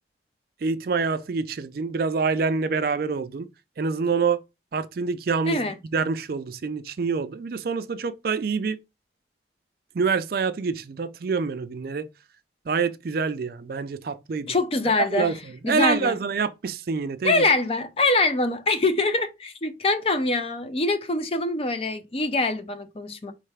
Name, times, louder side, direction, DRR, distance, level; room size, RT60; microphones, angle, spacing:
voice 1, 0.6-3.5 3.8-4.4 4.7-8.8 9.9-12.1 12.7-14.5 15.1-15.4 15.7-17.4, right 5 dB, 50° right, 0.4 m, -26 dB
voice 2, 14.5-16.1 17.2-23.3, left 2 dB, 30° left, 0.5 m, -24 dB
4.5 x 3.3 x 3.3 m
head